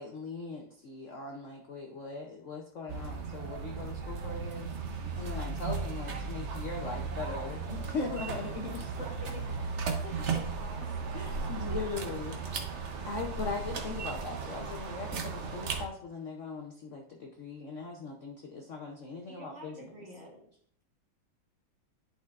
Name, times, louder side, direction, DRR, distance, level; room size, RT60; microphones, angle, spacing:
voice 1, 0.0-9.1 11.1-12.4 13.0-19.9, left 4 dB, 65° left, 2 dB, 0.7 m, -40 dB
sound 1, 2.9-15.9, right 5 dB, 60° right, 0.7 m, -36 dB
voice 2, 9.0-11.5 19.3-20.5, left 1 dB, 35° right, -2 dB, 1.4 m, -49 dB
11.0 x 4.3 x 2.4 m, 0.62 s
omnidirectional pair, 2.1 m